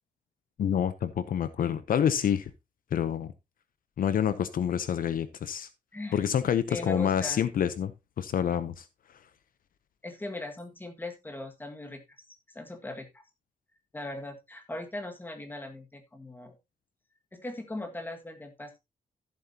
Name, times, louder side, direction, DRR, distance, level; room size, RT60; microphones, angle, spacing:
voice 1, 0.6-2.5 2.9-3.3 4.0-5.7 6.1-7.9 8.2-8.9, left 9 dB, 65° left, 0.7 m, -27 dB
voice 2, 6.7-7.4 10.0-12.0 12.5-13.2 13.9-16.5 17.3-18.8, left 2 dB, 10° left, 1.9 m, -39 dB
14.0 x 7.7 x 2.8 m
wide cardioid pair, 150°, 16 cm